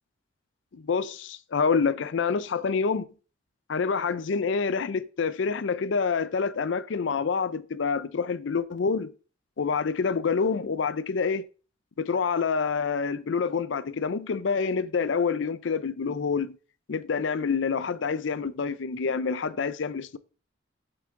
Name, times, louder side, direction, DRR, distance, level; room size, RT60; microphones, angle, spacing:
voice 1, 0.7-3.1 3.7-9.1 9.6-11.4 12.0-16.6 16.9-20.2, left 5 dB, 70° left, 0.5 m, -27 dB
7.9 x 7.4 x 3.7 m
head